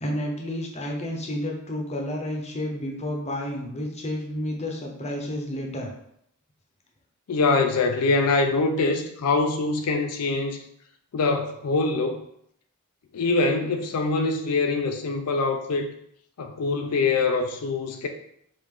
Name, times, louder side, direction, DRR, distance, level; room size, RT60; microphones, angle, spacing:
voice 1, 0.0-5.9, left 1 dB, 30° left, 0.7 m, -31 dB
voice 2, 7.3-10.6 11.1-12.2 13.1-15.9 16.4-18.1, left 3 dB, 85° left, 0.5 m, -24 dB
4.9 x 2.5 x 3.6 m
head